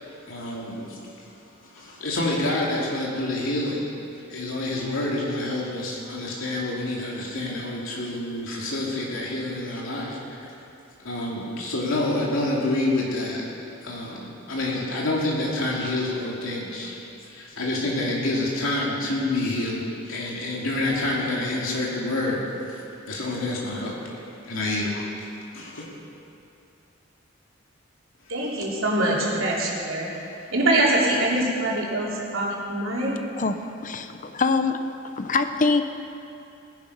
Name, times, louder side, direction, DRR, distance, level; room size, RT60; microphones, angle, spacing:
voice 1, 0.2-1.3 1.7-3.9 4.3-10.5 11.0-13.4 13.8-17.0 17.3-22.4 22.7-22.8 23.1-25.1 25.5-25.8 28.3-28.5 30.1-30.4, left 2 dB, 90° left, -4 dB, 2.6 m, -28 dB
voice 2, 28.3-30.1 30.5-33.2, right 1 dB, 85° right, -5 dB, 3.6 m, -24 dB
voice 3, 33.4-34.8 35.1-35.8, left 4 dB, 40° left, 9 dB, 0.8 m, -24 dB
19.5 x 11.0 x 5.5 m, 2.6 s
head